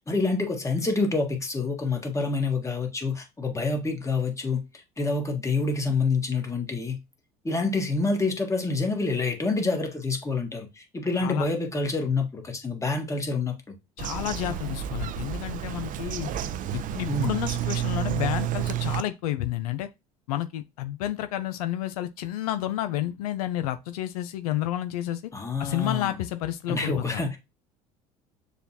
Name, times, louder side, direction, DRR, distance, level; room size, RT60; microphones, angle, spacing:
voice 1, 0.0-4.6 5.0-7.0 7.4-13.7 17.1-17.4 25.3-26.1 26.7-27.4, left 3 dB, 15° left, 1.4 m, -27 dB
voice 2, 14.0-16.3 16.7-19.9 20.3-25.2 25.6-27.2, left 13 dB, 85° left, 0.4 m, -30 dB
Bird vocalization bird call bird song, 14.0-19.0, right 10 dB, 45° right, 0.5 m, -30 dB
6.8 x 2.3 x 2.7 m
hypercardioid pair, 75°, 19 cm